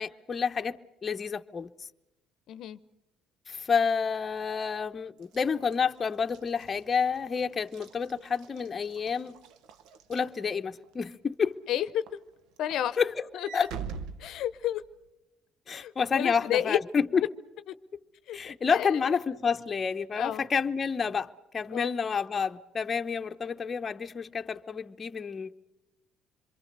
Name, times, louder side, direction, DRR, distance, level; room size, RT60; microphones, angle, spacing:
voice 1, 0.0-1.7 3.5-9.4 10.1-11.6 13.0-13.3 13.5-13.7 15.7-17.2 18.3-25.6, left 6 dB, 35° left, 0.9 m, -29 dB
voice 2, 2.5-2.8 11.7-12.0 12.6-13.0 13.3-13.7 14.2-14.8 15.7-16.8 18.3-18.4 18.7-18.9 20.1-20.5 21.7-21.9, left 11 dB, 70° left, 0.8 m, -31 dB
Walk footsteps / Slam, 5.2-10.9 11.4-11.7 12.1-15.1, right 6 dB, 75° right, 1.1 m, -45 dB
27.0 x 23.0 x 6.7 m
supercardioid pair, 75°, 0 cm